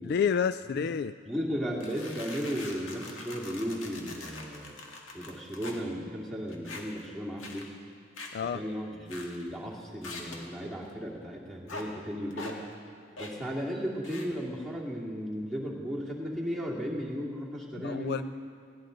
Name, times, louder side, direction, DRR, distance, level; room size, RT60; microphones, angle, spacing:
voice 1, 0.0-1.1 8.3-8.6 17.8-18.2, left 7 dB, 55° left, 13 dB, 0.3 m, -29 dB
voice 2, 1.2-4.7 5.1-7.7 8.4-12.6 13.2-18.2, equal, 5° left, -3 dB, 2.5 m, -35 dB
sound 1, 1.8-5.8 6.5-7.1 7.4-7.7 8.2-8.4 9.1-9.5 10.0-10.5 11.7-11.9 12.3-12.6 13.2-13.4 14.0-14.3, left 3 dB, 75° left, 2.0 m, -43 dB
20.5 x 16.5 x 4.0 m, 2.4 s
head